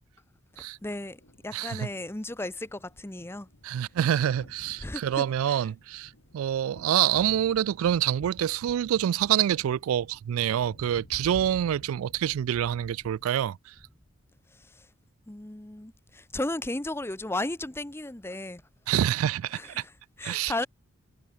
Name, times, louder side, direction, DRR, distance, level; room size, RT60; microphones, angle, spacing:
voice 1, 0.8-3.5 4.8-5.6 15.3-18.6 19.5-20.7, left 2 dB, 10° left, 0.7 m, -35 dB
Thunder, 0.9-13.5, equal, 65° left, 4.8 m, -51 dB
voice 2, 1.5-1.9 3.6-13.7 18.9-19.8 20.2-20.7, right 10 dB, 80° right, 0.3 m, -27 dB
head